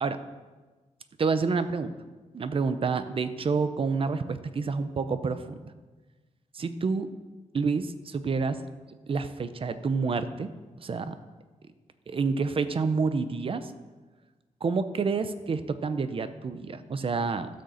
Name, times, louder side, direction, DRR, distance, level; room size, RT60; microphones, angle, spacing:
voice 1, 1.2-1.9 2.3-5.7 6.5-7.1 7.5-8.6 9.1-10.5 10.8-11.1 12.1-13.7 14.6-17.5, right 4 dB, 45° right, 11 dB, 0.7 m, -28 dB
12.5 x 6.5 x 7.0 m, 1.3 s
wide cardioid pair, 180°, 13 cm